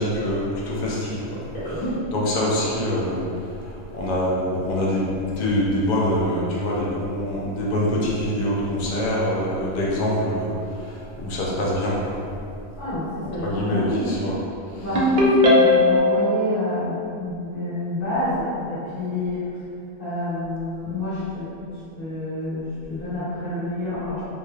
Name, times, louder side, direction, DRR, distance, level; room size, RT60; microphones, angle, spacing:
voice 1, 0.0-1.4 2.1-3.3 3.6-10.5 10.8-12.2 13.4-14.4 14.7-14.8, left 1 dB, 75° left, -5 dB, 0.4 m, -24 dB
voice 2, 12.8-14.1 14.8-19.6 20.0-21.5 22.0-24.3, left 1 dB, 45° left, -13 dB, 1.4 m, -28 dB
Ringtone, 14.9-16.1, left 2 dB, 70° right, 0.4 m, -16 dB
3.1 x 2.3 x 2.3 m, 2.6 s
omnidirectional pair, 1.3 m